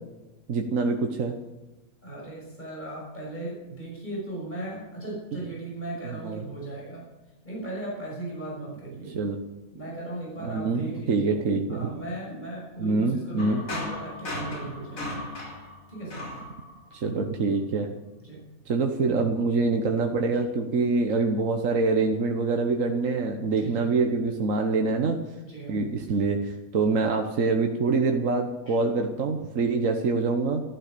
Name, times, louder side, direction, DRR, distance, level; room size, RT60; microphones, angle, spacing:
voice 1, 0.5-1.4 6.2-6.4 9.1-9.4 10.4-11.9 12.8-13.6 16.9-17.9 18.7-25.2 25.7-30.6, right 3 dB, 65° right, 4 dB, 1.5 m, -25 dB
voice 2, 2.0-7.0 7.4-9.1 9.7-15.1 15.9-16.2 18.2-18.4 23.4-24.0 25.4-25.8 26.7-27.0 28.7-28.8, right 2 dB, 30° left, -3 dB, 6.2 m, -37 dB
sound 1, 13.4-17.2, left 1 dB, 75° left, 3.5 m, -36 dB
14.0 x 12.0 x 6.8 m, 1.1 s
omnidirectional pair, 1.5 m